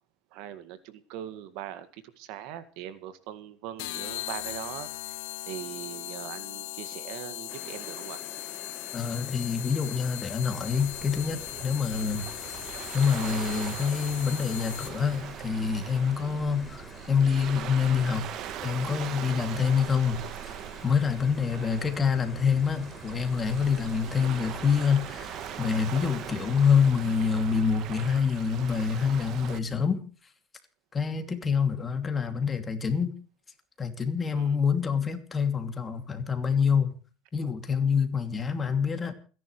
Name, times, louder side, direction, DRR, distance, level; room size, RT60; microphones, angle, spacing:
voice 1, 0.3-5.2 5.5-8.2 11.9-12.1 16.2-16.4 21.4-21.9 34.3-34.6, right 11 dB, 70° right, 1.9 m, -41 dB
sound 1, 3.8-15.2, left 18 dB, 85° left, 1.5 m, -39 dB
sound 2, 7.5-26.9, left 2 dB, 5° left, 3.9 m, -48 dB
voice 2, 8.9-12.4 12.9-18.3 18.6-20.2 20.8-30.1 30.9-33.1 33.8-37.0 37.3-39.1, left 6 dB, 20° left, 2.7 m, -26 dB
Waves surf, 10.7-29.6, right 11 dB, 50° right, 1.4 m, -41 dB
28.5 x 11.0 x 3.3 m
cardioid pair, 135°, 0 cm